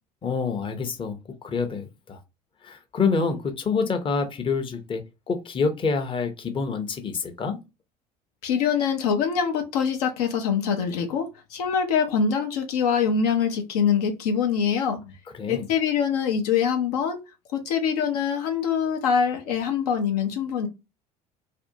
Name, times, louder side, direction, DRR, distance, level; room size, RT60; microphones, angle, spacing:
voice 1, 0.2-2.2 2.6-7.6 15.3-15.7, left 5 dB, 25° left, 0.6 m, -27 dB
voice 2, 8.4-15.0 15.5-17.2 17.5-20.7, left 7 dB, 70° left, 0.6 m, -24 dB
2.6 x 2.1 x 2.6 m
figure-of-eight pair, 65°, 21 cm